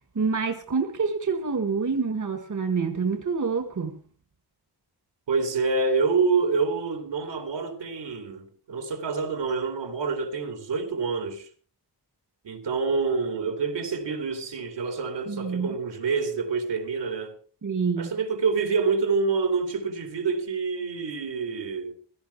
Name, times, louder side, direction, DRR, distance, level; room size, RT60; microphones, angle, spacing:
voice 1, 0.2-4.0 15.3-15.8 17.6-18.1, right 5 dB, 45° right, 1.7 m, -27 dB
voice 2, 5.3-11.5 12.4-17.4 18.0-21.9, right 4 dB, 75° right, 3.0 m, -27 dB
16.5 x 14.0 x 4.6 m
wide cardioid pair, 90°, 42 cm